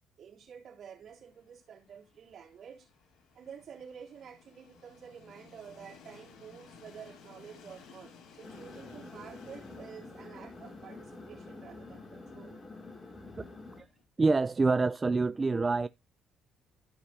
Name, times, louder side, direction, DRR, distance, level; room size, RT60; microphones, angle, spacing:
voice 1, 0.2-2.9 3.3-12.6, right 7 dB, 55° right, 3.4 m, -50 dB
Train, 1.1-14.0, left 5 dB, 70° left, 2.3 m, -58 dB
sound 1, 8.4-13.8, left 3 dB, 25° left, 2.7 m, -48 dB
voice 2, 14.2-15.9, right 3 dB, 25° right, 0.4 m, -26 dB
14.0 x 4.9 x 2.8 m
cardioid pair, 85°, 0 cm